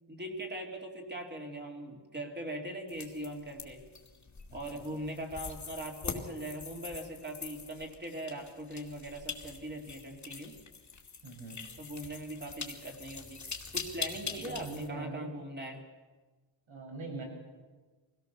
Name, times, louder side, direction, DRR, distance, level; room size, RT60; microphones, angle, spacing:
voice 1, 0.1-3.8 4.5-10.6 11.8-13.4 13.7-15.8, right 1 dB, 20° right, 1 dB, 2.8 m, -41 dB
sound 1, 2.9-14.9, left 5 dB, 35° left, 2.3 m, -43 dB
voice 2, 4.5-4.8 11.2-11.6 14.2-15.3 16.7-17.2, right 3 dB, 70° right, 1 dB, 6.2 m, -43 dB
24.0 x 17.5 x 6.9 m, 1.3 s
wide cardioid pair, 140°, 48 cm